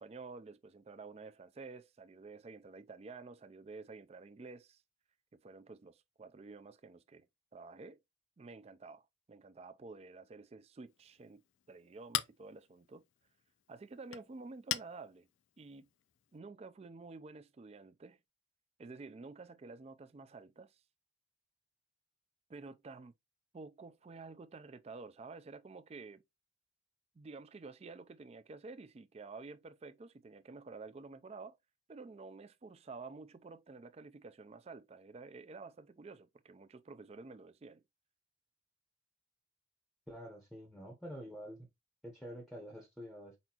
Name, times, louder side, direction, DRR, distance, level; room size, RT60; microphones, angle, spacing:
voice 1, 0.0-4.8 5.3-7.2 7.5-8.0 8.4-11.4 11.7-13.0 13.7-15.3 15.6-15.9 16.3-18.2 18.8-20.8 22.5-23.1 23.5-26.2 27.2-31.6 31.9-37.8, right 3 dB, 30° right, 0.3 m, -50 dB
Chink clink, 10.9-16.4, left 12 dB, 70° left, 0.4 m, -44 dB
voice 2, 40.1-41.7 42.0-43.4, equal, ahead, 0.7 m, -47 dB
4.4 x 4.2 x 2.8 m
head